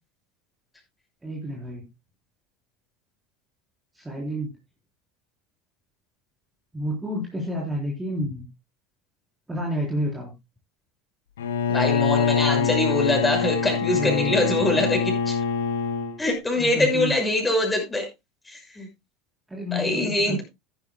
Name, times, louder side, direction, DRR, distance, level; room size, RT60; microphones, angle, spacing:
voice 1, 1.2-1.9 3.9-4.5 6.7-8.5 9.5-10.3 13.9-14.8 16.6-17.1 19.5-20.4, equal, 10° right, -2 dB, 3.7 m, -30 dB
Bowed string instrument, 11.4-16.2, left 6 dB, 90° left, 2.0 m, -24 dB
voice 2, 11.7-15.4 16.2-18.1 18.5-18.9 19.7-20.4, left 1 dB, 15° left, 2 dB, 6.2 m, -24 dB
14.5 x 11.0 x 2.2 m, 0.21 s
hypercardioid pair, 85°, 0 cm